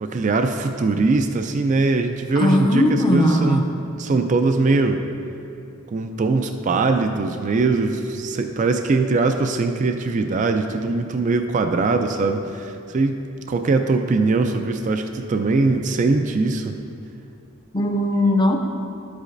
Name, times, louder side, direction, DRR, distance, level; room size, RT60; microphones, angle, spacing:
voice 1, 0.0-3.6 4.0-5.0 5.9-13.2 13.5-16.7, right 3 dB, 40° right, 6 dB, 0.3 m, -21 dB
voice 2, 2.4-3.7 17.7-18.5, left 1 dB, 25° left, 3 dB, 0.6 m, -18 dB
11.5 x 8.2 x 2.6 m, 2.6 s
head